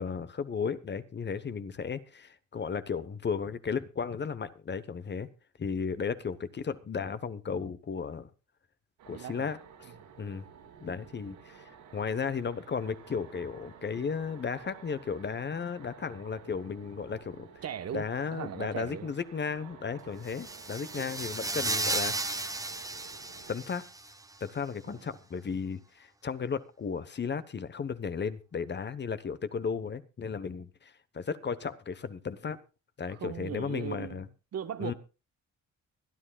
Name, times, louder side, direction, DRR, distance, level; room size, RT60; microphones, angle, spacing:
voice 1, 0.0-5.3 5.6-8.3 9.1-9.9 10.2-10.5 10.8-17.6 17.9-22.5 23.5-23.8 24.4-32.6 33.0-34.3 34.8-34.9, left 6 dB, 35° left, 1.0 m, -35 dB
sound 1, 9.0-23.6, right 7 dB, 85° right, 4.5 m, -53 dB
voice 2, 17.6-19.1 20.9-21.1 24.9-25.1 33.1-34.9, right 9 dB, 55° right, 1.2 m, -39 dB
sound 2, 20.3-24.1, right 2 dB, 10° right, 1.2 m, -34 dB
24.0 x 9.8 x 2.3 m
cardioid pair, 90°, 30 cm